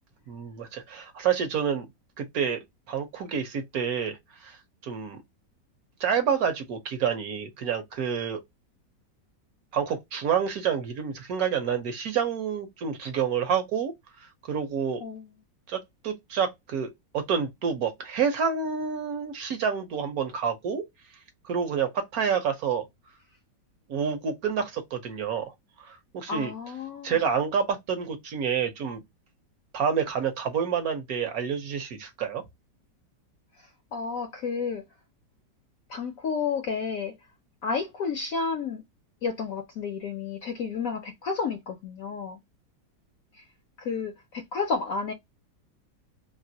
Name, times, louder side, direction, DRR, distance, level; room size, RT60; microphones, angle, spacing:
voice 1, 0.3-1.9 2.2-4.6 4.8-5.2 6.0-8.4 9.7-13.9 14.5-15.0 15.7-20.8 21.4-22.9 23.9-26.5 27.0-29.0 29.7-32.4, right 7 dB, 65° right, 1.1 m, -28 dB
voice 2, 26.3-27.2 33.9-34.8 35.9-37.1 37.6-38.8 39.2-42.4 43.3-43.4 43.8-45.1, left 5 dB, 70° left, 0.8 m, -31 dB
3.1 x 2.4 x 2.7 m
omnidirectional pair, 1.9 m